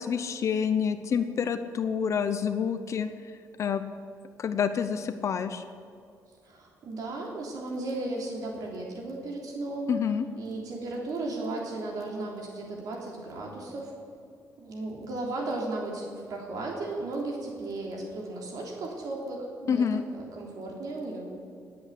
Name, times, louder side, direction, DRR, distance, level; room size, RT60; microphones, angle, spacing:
voice 1, 0.0-3.1 3.6-3.8 4.4-5.6 9.9-10.3 19.7-20.0, left 7 dB, 50° left, 10 dB, 0.7 m, -27 dB
voice 2, 6.4-9.9 10.4-13.9 14.6-19.9 20.1-21.3, right 2 dB, 70° right, -1 dB, 3.3 m, -35 dB
20.5 x 8.0 x 8.2 m, 2.4 s
cardioid pair, 140°, 7 cm